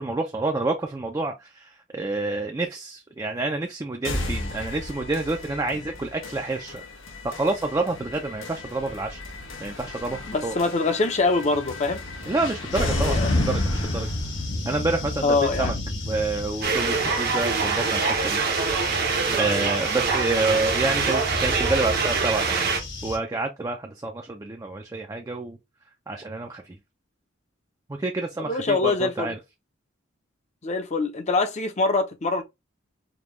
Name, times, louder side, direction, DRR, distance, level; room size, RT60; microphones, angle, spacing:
voice 1, 0.0-6.8 7.2-9.2 9.6-10.6 12.3-14.1 14.7-15.7 16.1-22.7 23.0-25.6 26.1-26.8 27.9-29.4, right 3 dB, 15° right, 0.4 m, -28 dB
sound 1, 4.0-16.0, left 2 dB, 85° left, 1.2 m, -34 dB
voice 2, 10.3-12.0 12.8-13.3 15.2-15.7 28.4-29.3 30.6-32.4, left 3 dB, 35° left, 0.6 m, -24 dB
sound 2, 12.7-23.2, left 2 dB, 65° left, 1.6 m, -31 dB
sound 3, 16.6-22.8, right 5 dB, 50° right, 0.8 m, -24 dB
5.2 x 2.3 x 3.0 m
head